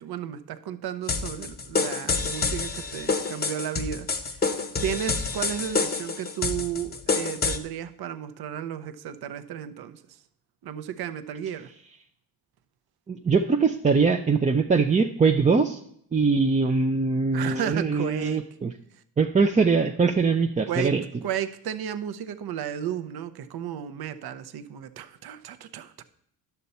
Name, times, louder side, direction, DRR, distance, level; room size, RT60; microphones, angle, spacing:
voice 1, 0.0-4.5 4.8-10.0 10.6-11.7 17.3-18.4 20.7-21.0 21.2-26.0, right 9 dB, 60° right, 12 dB, 0.7 m, -33 dB
sound 1, 1.1-7.6, left 4 dB, 20° left, 0.7 m, -28 dB
voice 2, 13.1-15.8 16.1-18.7 19.2-21.0, right 4 dB, 20° right, 4 dB, 0.4 m, -22 dB
10.5 x 6.8 x 4.2 m, 0.68 s
cardioid pair, 110°, 43 cm